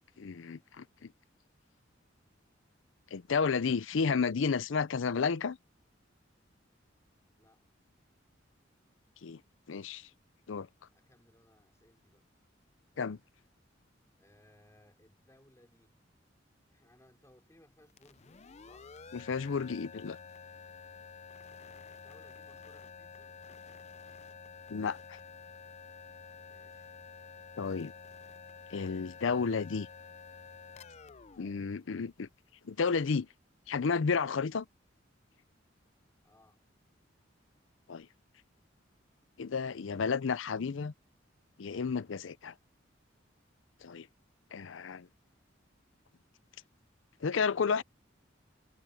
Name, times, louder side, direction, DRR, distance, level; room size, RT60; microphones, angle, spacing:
voice 1, 0.2-0.8 3.1-5.6 9.2-9.4 9.7-10.1 10.5-10.7 13.0-13.2 19.1-20.2 24.7-25.0 27.6-27.9 28.7-29.9 31.4-32.3 32.7-33.3 33.7-34.7 37.9-38.1 39.4-40.9 41.6-42.5 43.8-44.1 44.5-45.1 47.2-47.8, left 5 dB, 85° left, 0.5 m, -32 dB
voice 2, 10.9-12.3 14.2-16.0 16.7-18.9 21.7-23.4 26.4-27.0 36.2-36.6 47.4-47.8, left 1 dB, 15° left, 4.9 m, -64 dB
sound 1, 17.9-32.5, left 5 dB, 35° left, 0.6 m, -50 dB
head